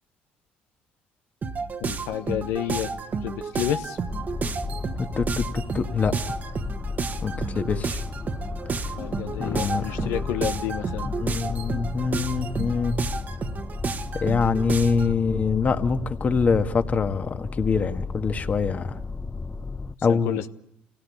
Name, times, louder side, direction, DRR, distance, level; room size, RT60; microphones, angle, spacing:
sound 1, 1.4-15.1, right 4 dB, 45° right, 1.3 m, -31 dB
voice 1, 1.8-2.9 3.2-4.0 7.7-7.8 9.0-11.1 20.1-20.5, left 11 dB, 80° left, 9 dB, 1.0 m, -30 dB
sound 2, 4.1-20.0, left 4 dB, 20° left, 0.8 m, -34 dB
voice 2, 5.0-6.4 7.2-8.0 8.7-8.9 9.4-10.2 11.0-12.9 14.1-19.0 20.0-20.5, left 5 dB, 40° left, 8 dB, 1.6 m, -25 dB
26.5 x 17.5 x 8.4 m, 0.82 s
supercardioid pair, 75°, 4 cm